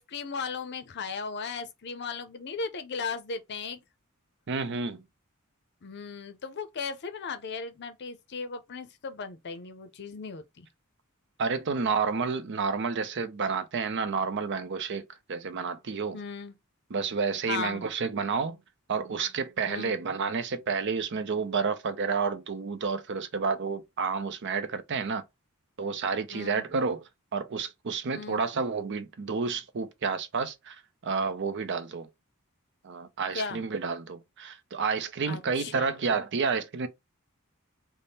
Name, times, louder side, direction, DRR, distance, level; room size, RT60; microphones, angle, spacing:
voice 1, 0.0-3.8 5.8-10.7 16.1-16.5 17.5-17.9 19.7-20.0 26.3-26.7 28.2-28.4 33.3-33.6 35.3-35.9, left 5 dB, 50° left, 0.6 m, -36 dB
voice 2, 4.5-5.0 11.4-15.0 15.3-16.2 16.9-18.6 18.9-25.2 25.8-27.0 27.3-32.1 32.8-36.9, right 5 dB, 55° right, 0.6 m, -30 dB
3.4 x 2.1 x 4.0 m
head